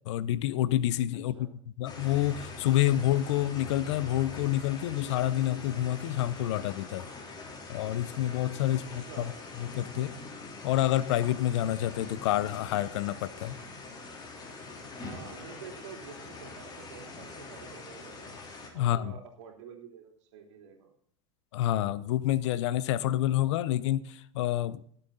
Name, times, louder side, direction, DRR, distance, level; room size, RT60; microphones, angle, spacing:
voice 1, 0.1-1.5 1.8-7.1 7.7-9.3 9.6-10.1 10.6-13.6 18.7-19.1 21.5-24.8, left 13 dB, 70° left, 0.8 m, -28 dB
sound 1, 1.8-18.7, left 3 dB, 25° left, 3.6 m, -44 dB
voice 2, 8.7-9.4 15.0-18.3 18.7-20.9, right 7 dB, 75° right, 3.2 m, -48 dB
18.5 x 8.0 x 4.0 m
hypercardioid pair, 100°, 16 cm